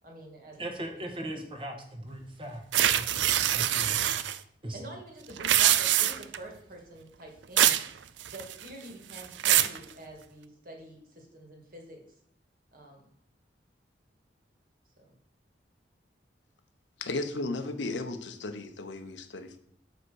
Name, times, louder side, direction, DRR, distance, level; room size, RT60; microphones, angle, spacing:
voice 1, 0.0-0.6 0.9-1.3 4.7-7.8 8.3-12.0 12.7-13.1 15.0-15.1, right 1 dB, 50° right, 1 dB, 2.1 m, -47 dB
voice 2, 0.6-4.1 4.6-4.8, right 1 dB, 30° right, 3 dB, 1.4 m, -39 dB
sound 1, 2.7-4.4 5.3-6.4 7.6-7.9 8.2-8.7 9.1-9.8, right 12 dB, 85° right, 0.4 m, -24 dB
voice 3, 17.0-19.6, left 2 dB, 90° left, 7 dB, 0.9 m, -35 dB
6.7 x 5.2 x 6.3 m, 0.71 s
head